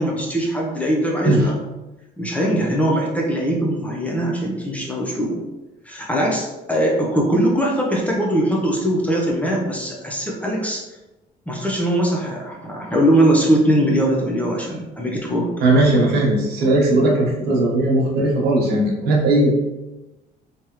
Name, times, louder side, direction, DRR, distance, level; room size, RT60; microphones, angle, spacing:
voice 1, 0.0-1.5 2.2-5.4 5.8-10.8 11.5-15.5, right 1 dB, 10° left, -3 dB, 0.8 m, -21 dB
voice 2, 15.6-19.5, right 2 dB, 70° right, -2 dB, 1.2 m, -17 dB
3.5 x 3.2 x 3.0 m, 1.0 s
cardioid pair, 110°, 17 cm